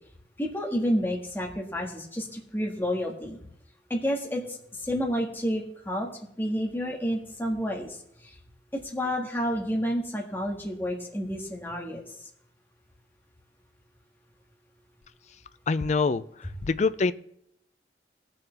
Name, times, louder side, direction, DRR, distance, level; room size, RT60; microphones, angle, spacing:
voice 1, 0.4-3.4 3.9-6.1 6.4-8.3 8.7-12.0, equal, 10° left, -1 dB, 1.8 m, -30 dB
voice 2, 15.7-17.1, left 4 dB, 40° left, 15 dB, 0.4 m, -25 dB
18.5 x 6.9 x 3.5 m, 0.73 s
head